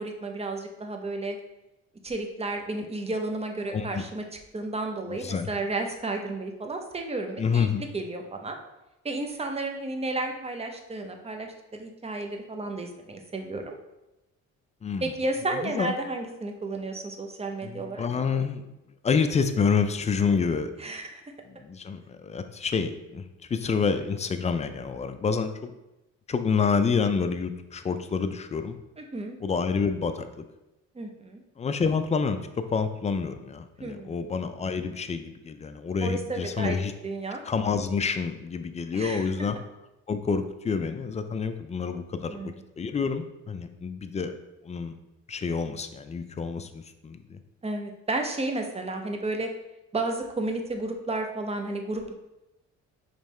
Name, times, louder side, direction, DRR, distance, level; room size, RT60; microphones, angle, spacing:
voice 1, 0.0-1.4 2.0-4.2 4.5-8.6 9.0-13.8 15.0-18.0 20.8-21.2 29.0-29.4 30.9-31.4 33.8-34.2 36.0-36.8 37.0-37.4 38.9-39.3 42.3-42.6 47.6-49.5 49.9-52.1, right 2 dB, 20° right, 4 dB, 0.6 m, -32 dB
voice 2, 3.7-4.0 5.1-5.5 7.4-7.8 14.8-15.1 15.5-15.9 17.6-18.6 19.0-20.7 21.5-23.2 23.5-25.7 26.3-28.8 29.4-30.4 31.6-32.4 32.7-36.9 37.4-39.6 40.1-44.3 44.6-44.9 45.3-47.4, left 5 dB, 25° left, 9 dB, 0.3 m, -28 dB
5.3 x 3.2 x 3.2 m, 0.95 s
cardioid pair, 90°, 30 cm